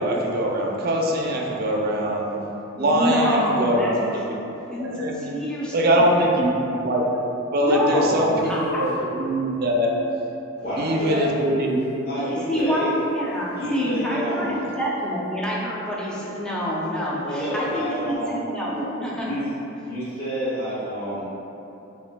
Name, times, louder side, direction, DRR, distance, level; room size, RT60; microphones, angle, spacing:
voice 1, 0.0-2.4 2.8-4.4 4.8-5.3 5.7-7.0 7.5-9.9 10.8-11.8, right 1 dB, 50° right, -1 dB, 0.5 m, -22 dB
voice 2, 2.8-4.2 4.7-6.1 7.6-8.9 12.2-19.3, equal, 5° left, -6 dB, 0.6 m, -27 dB
voice 3, 8.0-8.3 10.6-11.6 12.0-12.9 13.5-14.8 17.2-18.3 19.2-19.4 19.8-21.3, equal, 50° left, -12 dB, 1.5 m, -29 dB
7.1 x 2.6 x 2.2 m, 2.9 s
head